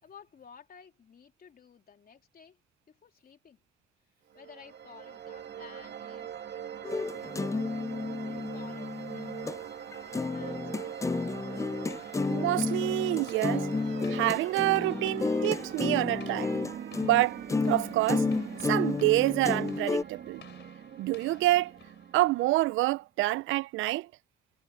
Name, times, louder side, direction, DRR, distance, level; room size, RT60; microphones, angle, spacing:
voice 1, 0.0-2.6 2.9-3.6 4.3-7.3 8.2-9.5 9.8-11.0, left 7 dB, 50° left, 3.6 m, -54 dB
sound 1, 4.3-23.0, right 9 dB, 65° right, 2.8 m, -42 dB
sound 2, 6.8-9.6 9.9-20.0, left 3 dB, 15° left, 0.4 m, -31 dB
sound 3, 11.3-22.5, left 9 dB, 65° left, 4.1 m, -56 dB
voice 2, 12.3-13.7 14.1-16.5 17.0-18.3 18.7-20.4 21.0-21.7 22.1-24.1, right 18 dB, 90° right, 0.5 m, -27 dB
cardioid pair, 90°, 20 cm